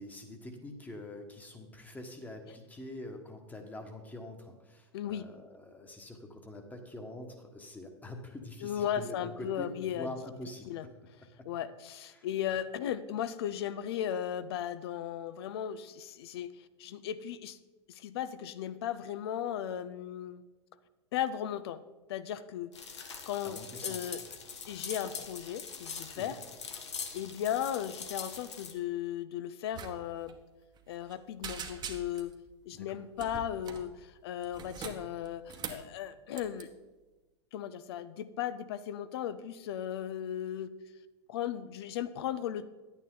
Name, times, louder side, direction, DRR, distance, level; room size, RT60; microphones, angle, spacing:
voice 1, 0.0-10.8 11.4-11.5 12.1-12.3 23.4-24.4 26.1-26.4 32.7-33.0, left 1 dB, 10° left, 4 dB, 1.4 m, -45 dB
voice 2, 4.9-5.3 8.6-10.1 10.7-10.9 11.4-17.6 17.9-20.4 21.1-21.8 22.1-22.7 23.3-24.2 24.7-26.4 27.1-30.4 30.9-32.3 32.7-36.7 37.5-40.7 41.3-42.7, left 10 dB, 60° left, 14 dB, 0.6 m, -36 dB
sound 1, 22.7-28.7, left 5 dB, 75° left, 1.2 m, -42 dB
sound 2, 29.7-29.9 30.2-30.3 30.7-31.1 31.4-32.3 33.2-33.9 34.4-35.9 36.3-36.6, right 6 dB, 30° right, 1.1 m, -42 dB
10.5 x 9.0 x 3.8 m, 1.2 s
figure-of-eight pair, 95°, 15 cm